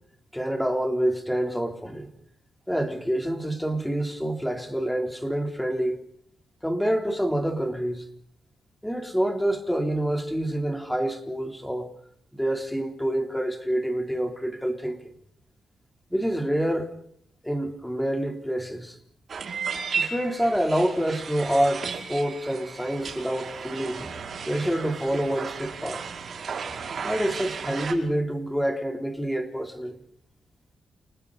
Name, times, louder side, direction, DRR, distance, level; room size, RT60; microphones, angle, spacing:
voice 1, 0.3-2.1 2.7-6.0 6.6-8.1 8.8-11.9 12.3-15.0 16.1-16.9 17.4-19.0 20.0-24.1 24.5-26.0 27.0-30.0, right 1 dB, ahead, 3.6 m, -27 dB
sound 1, 19.3-27.9, right 6 dB, 40° right, 5.4 m, -34 dB
30.0 x 29.5 x 4.1 m
wide cardioid pair, 170°, 0 cm